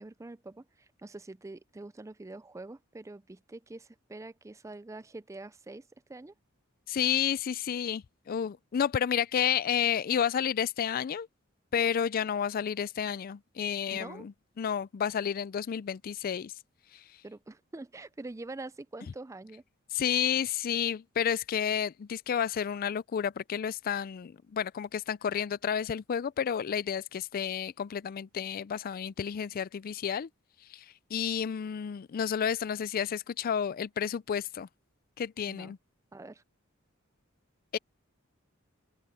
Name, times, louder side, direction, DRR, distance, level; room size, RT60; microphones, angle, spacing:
voice 1, 0.0-6.3 13.9-14.3 17.2-19.6 35.5-35.7 36.1-36.4, right 2 dB, 15° right, 0.4 m, -45 dB
voice 2, 6.9-11.3 11.7-16.5 16.9-17.0 19.9-30.3 30.7-30.9 31.1-34.7 35.2-35.8 37.7-37.8, left 8 dB, 45° left, 0.3 m, -31 dB
open air
head